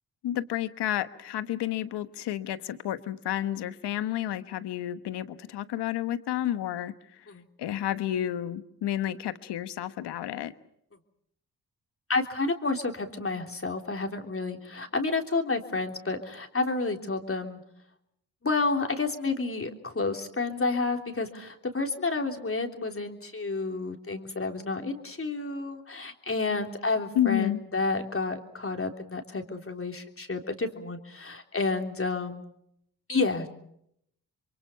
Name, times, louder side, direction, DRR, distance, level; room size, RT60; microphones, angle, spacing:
voice 1, 0.2-6.9 7.6-10.5 27.1-27.6, left 12 dB, 80° left, 12 dB, 1.2 m, -30 dB
voice 2, 12.1-17.6 18.4-32.5 33.1-33.5, left 3 dB, 35° left, 4 dB, 3.4 m, -30 dB
28.5 x 23.5 x 5.8 m, 0.74 s
supercardioid pair, 50°, 40 cm